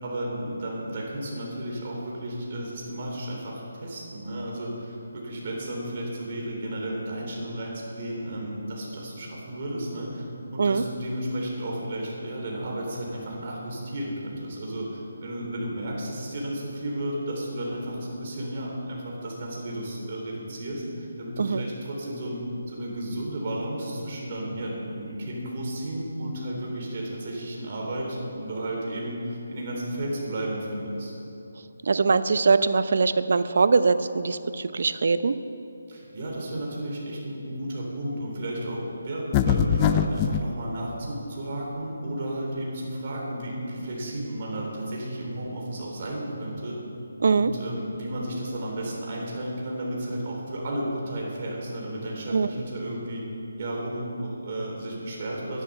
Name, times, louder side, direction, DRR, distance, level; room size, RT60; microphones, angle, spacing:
voice 1, 0.0-10.2 10.5-22.4 22.7-31.1 35.9-46.8 47.3-53.2 53.6-55.6, right 1 dB, 40° right, -2 dB, 3.6 m, -33 dB
voice 2, 31.8-35.4 47.2-47.5 52.3-52.5, right 4 dB, 55° right, 13 dB, 0.6 m, -22 dB
sound 1, 39.3-40.5, left 8 dB, 20° left, 0.4 m, -22 dB
11.0 x 11.0 x 6.7 m, 2.9 s
hypercardioid pair, 165°, 0 cm